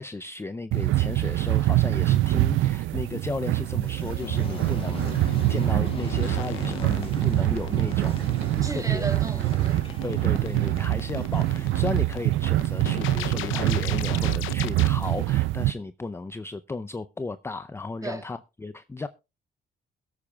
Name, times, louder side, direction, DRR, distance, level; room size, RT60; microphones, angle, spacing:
voice 1, 0.0-8.2 8.7-9.1 10.0-19.1, left 3 dB, 15° left, 0.5 m, -34 dB
sound 1, 0.7-15.7, right 16 dB, 80° right, 0.5 m, -25 dB
sound 2, 3.0-15.3, left 3 dB, 30° left, 2.0 m, -45 dB
sound 3, 4.2-14.9, left 12 dB, 90° left, 0.7 m, -36 dB
voice 2, 8.6-9.8 18.0-18.3, right 2 dB, 15° right, 1.9 m, -34 dB
22.0 x 8.5 x 2.3 m
cardioid pair, 90°, 20 cm